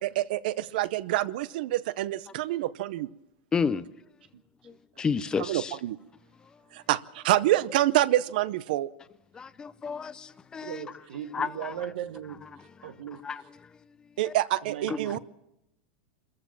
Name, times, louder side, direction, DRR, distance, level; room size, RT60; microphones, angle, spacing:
voice 1, 0.0-3.1 5.4-6.0 6.7-8.9 14.2-15.2, right 15 dB, 65° right, 0.7 m, -27 dB
voice 2, 3.5-3.9 4.6-5.7 9.3-10.8 11.3-11.7 13.2-13.4 14.2-14.3 14.9-15.0, left 5 dB, 15° left, 0.6 m, -31 dB
voice 3, 10.6-12.4 12.8-13.2 14.6-15.2, right 10 dB, 85° right, 1.2 m, -38 dB
25.0 x 14.5 x 7.4 m
supercardioid pair, 150°, 5 cm